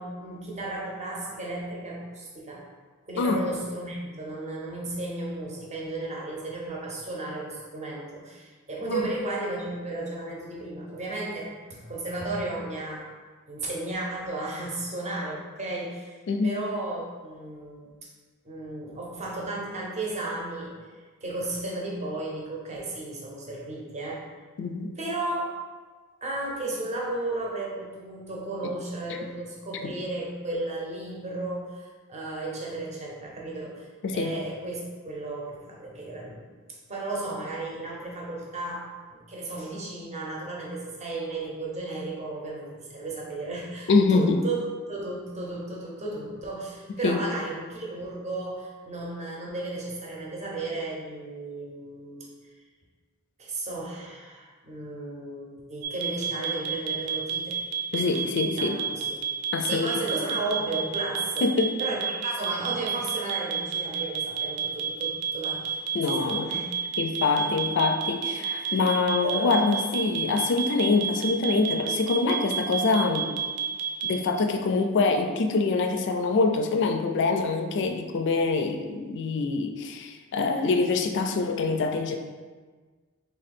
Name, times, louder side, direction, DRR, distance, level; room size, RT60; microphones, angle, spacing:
voice 1, 0.0-2.6 3.1-13.1 13.5-16.2 16.4-18.1 18.4-24.3 25.0-25.5 26.2-38.8 39.1-44.6 44.9-52.3 53.4-57.6 58.1-59.2 59.6-61.5 61.8-65.8 66.1-67.7 68.5-68.8 69.2-69.7, right 2 dB, 30° right, -3 dB, 0.7 m, -34 dB
voice 2, 24.6-24.9 29.8-29.9 34.0-34.3 43.9-44.4 47.0-47.2 57.9-58.8 59.5-59.9 61.4-61.8 65.9-66.5 67.0-73.3 74.0-82.2, left 4 dB, 55° left, 6 dB, 0.4 m, -25 dB
sound 1, 55.8-74.1, right 8 dB, 85° right, 0.5 m, -29 dB
3.3 x 2.6 x 4.1 m, 1.4 s
head